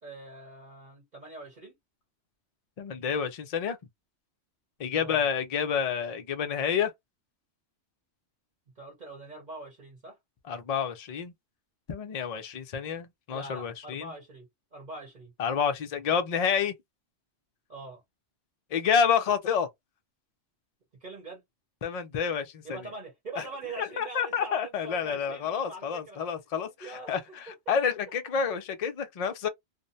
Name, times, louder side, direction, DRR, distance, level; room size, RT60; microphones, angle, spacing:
voice 1, 0.0-1.7 5.0-5.2 8.8-10.2 13.3-15.3 17.7-18.0 21.0-21.4 22.6-26.2 26.8-27.7, right 2 dB, 45° right, 0.9 m, -43 dB
voice 2, 2.8-3.8 4.8-6.9 10.5-11.3 11.9-14.1 15.4-16.7 18.7-19.7 21.8-22.8 23.4-23.5 23.8-29.5, left 7 dB, 50° left, 0.4 m, -29 dB
2.6 x 2.1 x 2.6 m
omnidirectional pair, 1.2 m